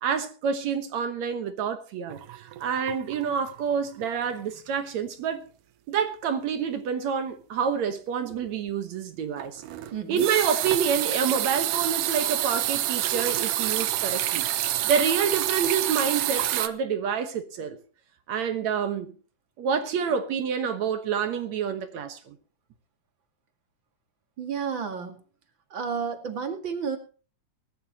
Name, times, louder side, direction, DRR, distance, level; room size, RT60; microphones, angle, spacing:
voice 1, 0.0-5.4 5.9-9.6 10.1-14.5 14.8-17.8 18.3-19.1 19.6-22.4, right 7 dB, 65° right, 2.4 m, -28 dB
sound 1, 2.1-3.7 4.0-4.3 4.7-4.8 9.4-16.7, right 13 dB, 90° right, 2.5 m, -28 dB
voice 2, 9.9-10.3 24.4-25.2 25.7-27.0, right 6 dB, 40° right, 2.4 m, -31 dB
20.0 x 12.5 x 2.9 m
omnidirectional pair, 3.6 m